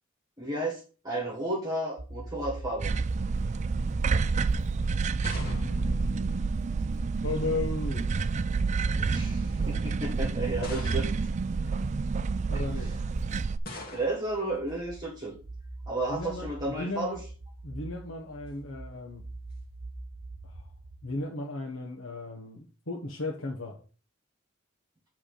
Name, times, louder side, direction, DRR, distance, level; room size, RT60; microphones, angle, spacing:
voice 1, 0.4-3.0 8.9-11.1 13.9-15.4 15.9-17.2, right 2 dB, 20° right, -2 dB, 1.6 m, -33 dB
sound 1, 2.0-21.2, right 2 dB, 55° right, 0.8 m, -44 dB
sound 2, 2.8-13.6, right 4 dB, 35° right, 0.3 m, -29 dB
sound 3, 5.1-7.0 8.0-8.5 9.3-9.4 10.6-11.4 13.6-14.4, left 2 dB, 50° left, 2.0 m, -44 dB
voice 2, 5.4-6.5 7.2-8.1 12.5-12.9 16.1-17.2 17.6-19.3 20.4-20.7 21.0-23.8, left 2 dB, 80° left, 0 dB, 1.2 m, -35 dB
7.8 x 3.6 x 6.6 m, 0.37 s
head